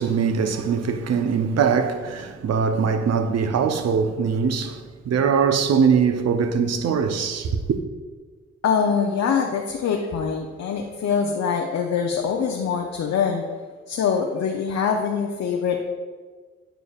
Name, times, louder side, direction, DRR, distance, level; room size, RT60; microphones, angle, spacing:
voice 1, 0.0-7.8, right 6 dB, 55° right, 0.7 m, -22 dB
voice 2, 8.6-13.4 13.9-15.8, left 6 dB, 60° left, 0.6 m, -24 dB
9.0 x 5.0 x 2.4 m
hypercardioid pair, 40°, 31 cm